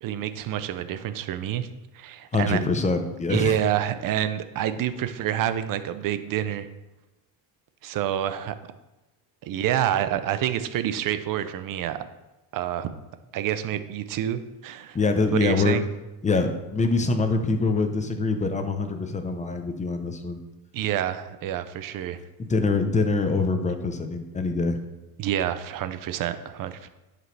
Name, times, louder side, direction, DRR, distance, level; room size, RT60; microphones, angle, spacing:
voice 1, 0.0-1.7 1.9-2.6 3.3-6.7 7.8-8.5 9.4-12.0 12.5-12.9 13.3-15.0 15.4-15.8 20.7-22.2 25.2-26.9, right 11 dB, 45° right, 11 dB, 0.6 m, -28 dB
voice 2, 2.3-3.6 14.9-15.8 16.2-20.4 22.4-24.8, left 3 dB, 15° left, 7 dB, 0.8 m, -24 dB
11.0 x 5.1 x 3.3 m, 1.0 s
supercardioid pair, 115°, 49 cm